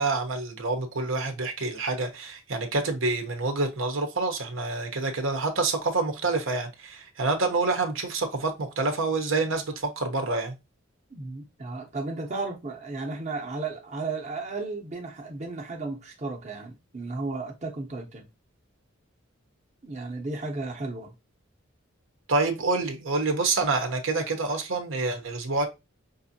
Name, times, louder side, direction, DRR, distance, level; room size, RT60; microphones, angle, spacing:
voice 1, 0.0-10.5 22.3-25.7, right 3 dB, 70° right, 0.9 m, -27 dB
voice 2, 11.1-18.2 19.8-21.1, right 3 dB, 35° right, 0.8 m, -34 dB
5.3 x 2.6 x 2.7 m
head